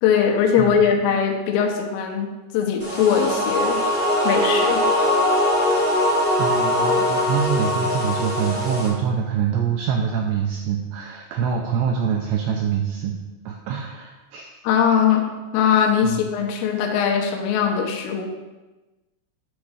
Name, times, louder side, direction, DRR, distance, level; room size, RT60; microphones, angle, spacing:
voice 1, 0.0-4.9 14.6-15.3 15.5-18.3, left 7 dB, 85° left, 2 dB, 3.6 m, -21 dB
sound 1, 2.8-8.9, left 1 dB, 10° right, 0.6 m, -21 dB
voice 2, 6.4-13.1 13.5-14.6 16.0-16.2, right 7 dB, 85° right, 1 dB, 2.4 m, -25 dB
9.9 x 3.6 x 6.5 m, 1.1 s
omnidirectional pair, 5.6 m